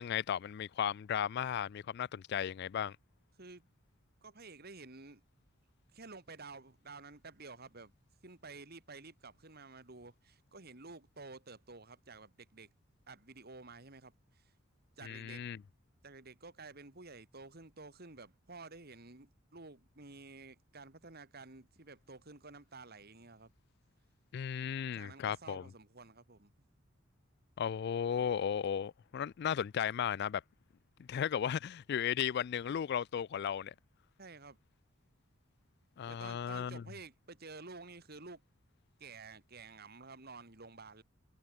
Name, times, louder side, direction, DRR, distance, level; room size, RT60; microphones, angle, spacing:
voice 1, 0.0-3.0 15.0-15.6 24.3-25.6 27.6-30.4 31.1-33.7 36.0-36.8, left 8 dB, 50° left, 0.3 m, -35 dB
voice 2, 4.2-5.2 5.9-7.9 8.2-12.7 13.1-14.5 15.0-15.4 16.0-23.5 24.9-26.5 34.2-34.6 36.1-38.4 39.0-41.0, right 3 dB, 50° right, 2.5 m, -51 dB
head